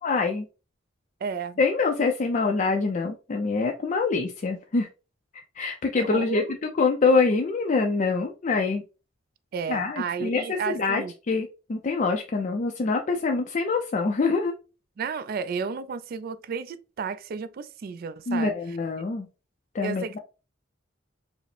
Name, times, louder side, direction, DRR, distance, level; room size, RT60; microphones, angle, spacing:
voice 1, 0.0-0.5 1.6-4.9 5.6-8.8 9.7-14.5 18.3-19.3 19.7-20.0, left 4 dB, 40° left, 0.4 m, -25 dB
voice 2, 1.2-1.6 6.0-6.5 9.5-11.1 15.0-18.5 19.8-20.2, right 5 dB, 50° right, 0.3 m, -32 dB
4.8 x 2.0 x 3.2 m
head